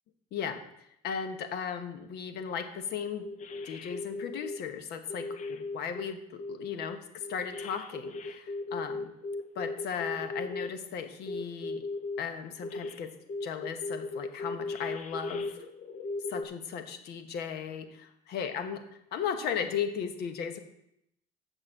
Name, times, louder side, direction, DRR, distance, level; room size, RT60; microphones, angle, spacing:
voice 1, 1.0-3.3 3.6-9.1 9.5-11.8 12.2-13.1 13.4-15.6 16.3-18.8 19.1-20.6, left 7 dB, 75° left, 8 dB, 1.2 m, -36 dB
sound 1, 2.8-2.9 3.2-4.6 5.1-6.0 6.4-10.7 11.3-12.2 12.6-13.0 13.3-16.5, left 3 dB, 45° left, 0.9 m, -37 dB
6.5 x 6.5 x 7.7 m, 0.78 s
cardioid pair, 110°, 17 cm